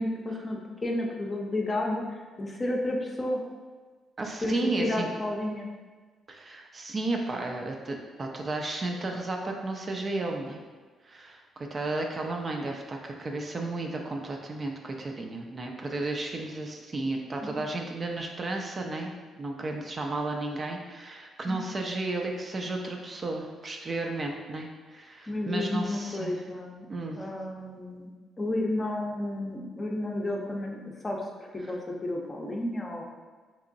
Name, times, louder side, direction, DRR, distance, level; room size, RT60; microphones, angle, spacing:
voice 1, 0.0-3.4 4.4-5.7 17.4-17.6 21.5-21.6 25.3-26.9 27.1-28.1 28.4-33.0, left 1 dB, 25° left, 0 dB, 0.6 m, -32 dB
voice 2, 4.2-5.1 6.3-10.6 11.0-19.1 19.4-26.3 26.9-27.2, right 2 dB, 35° right, 2 dB, 0.4 m, -33 dB
3.6 x 2.9 x 2.5 m, 1.4 s
cardioid pair, 90°, 0 cm